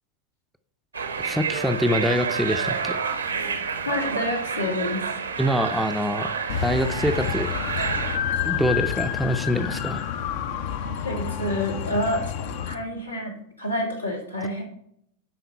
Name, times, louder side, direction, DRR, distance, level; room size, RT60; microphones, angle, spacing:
sound 1, 0.9-8.2, right 6 dB, 75° right, 0.9 m, -29 dB
voice 1, 1.2-3.0 5.4-6.3 6.6-7.5 8.4-10.0, equal, ahead, 8 dB, 0.5 m, -25 dB
voice 2, 3.9-5.0 10.8-12.2 12.6-14.6, left 1 dB, 85° left, -1 dB, 2.2 m, -28 dB
sound 2, 6.5-12.7, left 8 dB, 50° left, 0.6 m, -29 dB
9.9 x 3.8 x 5.3 m, 0.71 s
figure-of-eight pair, 90°, 0 cm